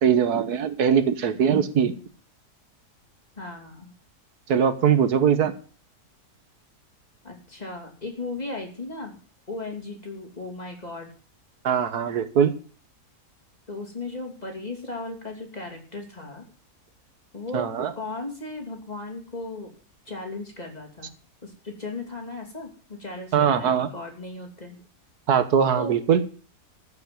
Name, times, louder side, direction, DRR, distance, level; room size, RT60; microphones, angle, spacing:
voice 1, 0.0-1.9 4.5-5.5 11.6-12.5 17.5-17.9 23.3-23.9 25.3-26.2, right 7 dB, 80° right, 11 dB, 1.6 m, -21 dB
voice 2, 3.4-3.9 7.2-9.2 9.5-11.1 13.7-16.4 17.3-17.7 17.9-19.7 20.1-21.1 21.4-24.8 25.8-25.9, left 2 dB, 25° left, 2 dB, 3.0 m, -36 dB
14.0 x 6.1 x 9.1 m, 0.40 s
omnidirectional pair, 1.6 m